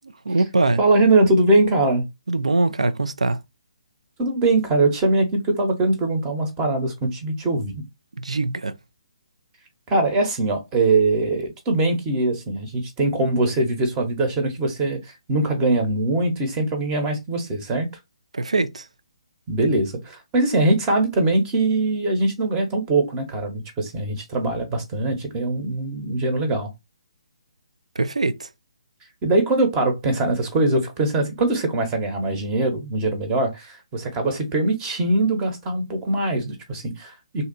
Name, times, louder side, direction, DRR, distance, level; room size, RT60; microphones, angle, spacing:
voice 1, 0.3-0.8 2.3-3.4 8.2-8.7 18.3-18.8 28.0-28.5, right 3 dB, 80° right, 0.4 m, -22 dB
voice 2, 0.8-2.0 4.2-7.8 9.9-15.0 15.3-17.9 19.5-26.7 29.2-37.5, right 2 dB, 20° right, 0.8 m, -22 dB
2.6 x 2.3 x 4.0 m
figure-of-eight pair, 140°, 3 cm